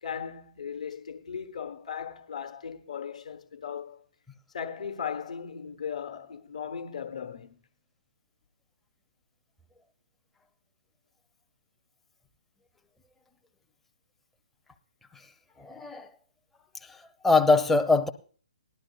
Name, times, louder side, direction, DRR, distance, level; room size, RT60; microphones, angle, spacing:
voice 1, 0.0-4.0 4.5-7.6, left 7 dB, 65° left, 1.2 m, -37 dB
voice 2, 15.6-16.1 16.8-17.0 17.2-18.1, left 3 dB, 5° left, 0.5 m, -22 dB
18.5 x 11.5 x 2.3 m
figure-of-eight pair, 130°, 4 cm